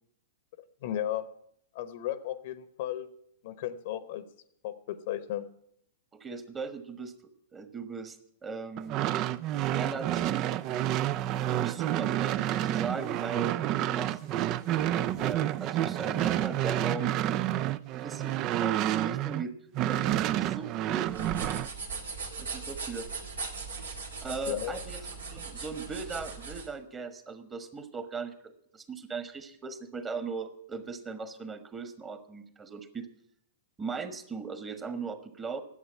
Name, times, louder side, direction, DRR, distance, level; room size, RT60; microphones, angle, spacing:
voice 1, 0.8-1.2 1.7-3.1 3.4-4.2 4.6-5.5 24.5-24.8, left 12 dB, 55° left, 14 dB, 1.0 m, -34 dB
voice 2, 6.1-7.1 7.5-8.2 8.4-9.0 9.5-10.4 11.3-14.2 14.7-17.1 17.9-19.5 19.9-21.3 22.4-23.1 24.2-25.0 25.3-33.1 33.8-35.6, right 4 dB, 20° right, 10 dB, 1.3 m, -38 dB
sound 1, 8.8-19.4 19.7-21.7, right 13 dB, 35° right, 0.5 m, -29 dB
sound 2, 21.1-26.7, right 4 dB, 75° right, 2.1 m, -39 dB
11.0 x 8.0 x 9.4 m, 0.70 s
figure-of-eight pair, 105°, 0 cm